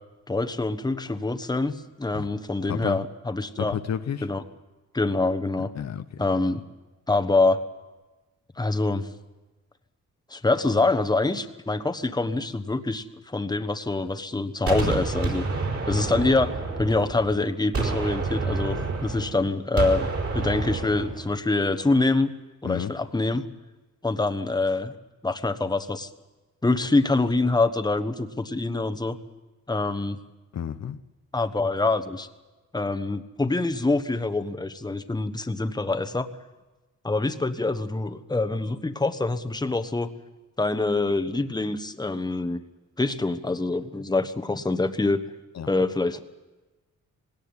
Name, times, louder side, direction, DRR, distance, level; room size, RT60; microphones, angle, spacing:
voice 1, 0.3-3.8 4.2-4.4 4.9-5.7 6.2-6.6 7.1-7.6 8.6-9.1 10.3-15.5 15.9-20.1 20.3-22.3 22.6-23.4 24.0-24.9 25.2-26.1 26.6-29.2 29.7-30.2 31.3-32.3 32.7-36.3 37.0-40.1 40.6-42.6 43.0-45.2 45.7-46.2, left 3 dB, 15° left, 9 dB, 1.2 m, -25 dB
voice 2, 2.7-3.0 3.6-4.3 5.7-6.2 22.6-22.9 30.5-31.0 45.5-45.7, left 9 dB, 60° left, 9 dB, 0.9 m, -31 dB
Gunshot gunfire, 14.7-17.4 17.7-21.3, right 3 dB, 50° right, 5.2 m, -28 dB
19.5 x 18.0 x 9.8 m, 1.2 s
cardioid pair, 95°, 31 cm